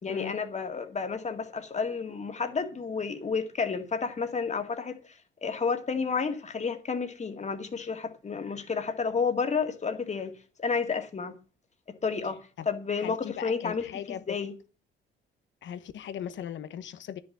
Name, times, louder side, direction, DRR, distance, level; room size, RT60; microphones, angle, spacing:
voice 1, 0.0-10.3 10.6-11.4 12.0-12.4 12.7-14.5, left 5 dB, 35° left, 2.1 m, -31 dB
voice 2, 12.9-14.2 15.6-17.2, left 9 dB, 70° left, 1.1 m, -38 dB
10.5 x 6.4 x 7.3 m
cardioid pair, 90°, 20 cm